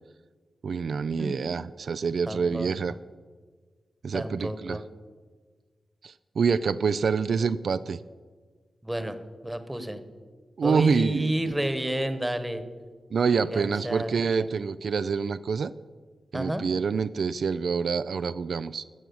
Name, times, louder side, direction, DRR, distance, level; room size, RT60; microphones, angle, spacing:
voice 1, 0.6-2.9 4.0-4.8 6.0-8.0 10.6-11.5 13.1-15.7 16.3-18.9, right 5 dB, 75° right, 13 dB, 0.3 m, -27 dB
voice 2, 2.3-2.7 4.1-4.8 8.8-9.2 9.4-10.0 10.6-12.6 13.2-14.5 16.3-16.6, right 1 dB, 10° right, 10 dB, 1.1 m, -31 dB
15.0 x 6.1 x 7.9 m, 1.5 s
wide cardioid pair, 105°, 0 cm